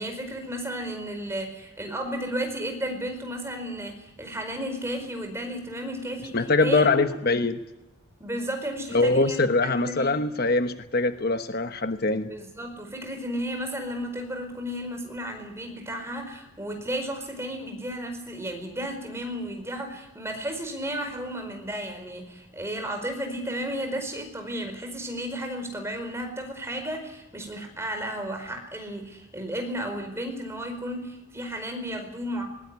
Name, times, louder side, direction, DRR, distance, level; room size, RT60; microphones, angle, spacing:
voice 1, 0.0-7.1 8.2-10.1 12.3-32.4, equal, 15° right, 4 dB, 4.8 m, -33 dB
voice 2, 6.3-7.6 8.9-12.3, left 3 dB, 50° left, 8 dB, 1.1 m, -23 dB
20.0 x 20.0 x 9.8 m, 0.96 s
head